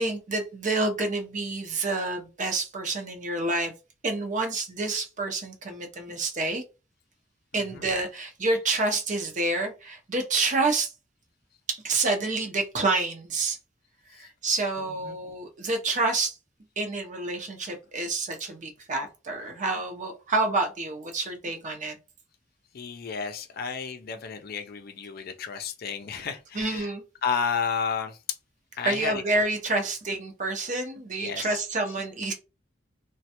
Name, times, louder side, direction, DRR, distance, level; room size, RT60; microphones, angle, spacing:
voice 1, 0.0-3.7 4.0-6.6 7.5-10.9 11.7-13.6 14.2-16.3 16.8-22.0 26.5-27.0 28.8-32.3, right 3 dB, 40° right, 0.7 m, -28 dB
voice 2, 7.5-7.8 14.1-14.3 14.8-15.2 22.7-26.9 27.2-28.2 28.8-29.2 31.2-31.6, left 6 dB, 55° left, 0.5 m, -32 dB
3.1 x 2.2 x 2.8 m
head